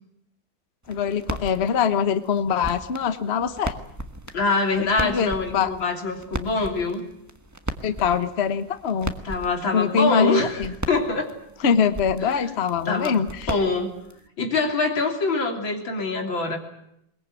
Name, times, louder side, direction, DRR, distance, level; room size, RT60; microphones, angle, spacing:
sound 1, 0.8-14.3, right 1 dB, 10° right, 1.1 m, -37 dB
voice 1, 0.9-3.8 4.8-5.7 7.8-9.1 9.7-10.7 11.6-13.5, left 7 dB, 40° left, 11 dB, 1.2 m, -23 dB
voice 2, 4.3-7.0 9.2-11.3 12.2-12.5 12.9-13.2 13.5-13.9 14.4-16.6, left 3 dB, 90° left, 3 dB, 3.9 m, -24 dB
21.5 x 21.5 x 9.1 m, 0.78 s
omnidirectional pair, 2.1 m